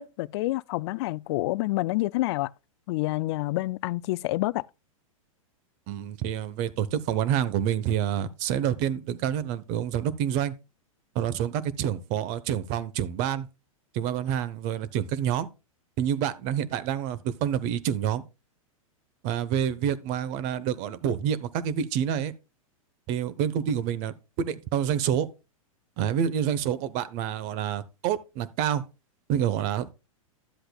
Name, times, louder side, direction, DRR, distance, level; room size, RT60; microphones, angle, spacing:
voice 1, 0.0-2.5 2.9-4.7, left 19 dB, 50° left, 0.4 m, -28 dB
voice 2, 5.9-10.5 11.1-13.5 13.9-15.5 16.0-18.2 19.2-22.3 23.1-25.3 26.0-28.8 29.3-29.9, right 9 dB, 40° right, 0.9 m, -28 dB
12.5 x 7.9 x 2.3 m
hypercardioid pair, 115°, 18 cm